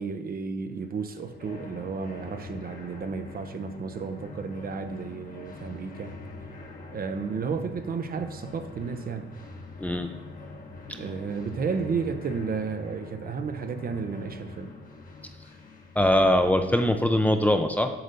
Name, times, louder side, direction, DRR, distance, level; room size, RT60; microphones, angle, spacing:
voice 1, 0.0-6.1 6.9-9.3 11.0-14.7, right 5 dB, 50° right, 8 dB, 0.8 m, -32 dB
sound 1, 0.8-16.6, left 3 dB, 45° left, 1.3 m, -44 dB
voice 2, 16.0-17.9, left 1 dB, 10° left, 6 dB, 0.6 m, -22 dB
7.9 x 4.0 x 6.8 m, 1.2 s
cardioid pair, 90°, 20 cm